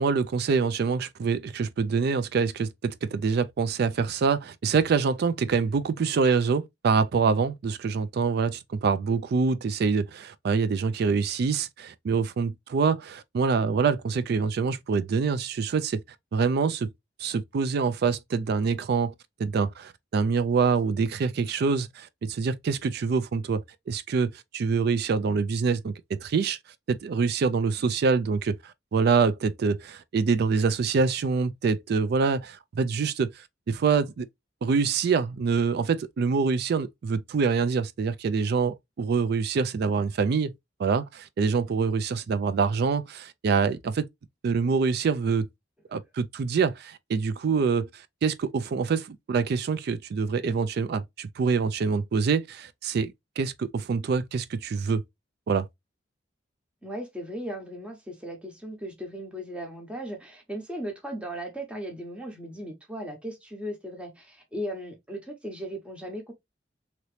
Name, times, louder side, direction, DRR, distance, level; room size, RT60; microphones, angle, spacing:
voice 1, 0.0-16.0 16.3-16.9 17.2-19.1 19.4-23.6 23.9-25.9 26.2-26.6 26.9-34.3 34.6-40.5 40.8-44.1 44.4-45.5 45.9-47.9 48.2-55.0 55.5-55.7, right 5 dB, 60° right, 0.3 m, -25 dB
voice 2, 56.8-66.3, equal, 5° right, 0.9 m, -37 dB
2.9 x 2.7 x 3.1 m
head